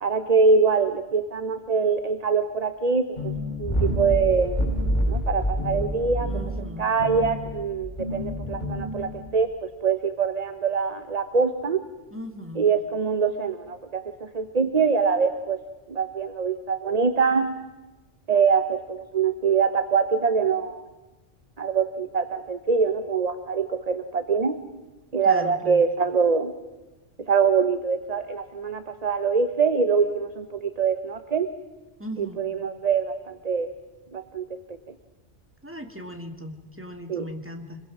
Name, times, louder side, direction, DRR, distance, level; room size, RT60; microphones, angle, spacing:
voice 1, 0.0-3.3 3.6-4.6 5.1-6.3 6.8-9.5 9.8-11.8 12.6-15.6 15.9-17.6 18.3-20.8 21.6-24.6 25.1-26.5 27.3-31.5 32.2-33.7 34.1-34.5 37.1-37.2, right 5 dB, 35° right, 9 dB, 1.0 m, -24 dB
sound 1, 3.2-9.4, equal, 35° left, 7.2 m, -28 dB
voice 2, 6.2-7.0 12.1-12.7 25.2-25.8 32.0-32.6 35.6-37.8, equal, 10° right, 4 dB, 2.1 m, -38 dB
26.0 x 22.0 x 6.2 m, 1.1 s
omnidirectional pair, 1.2 m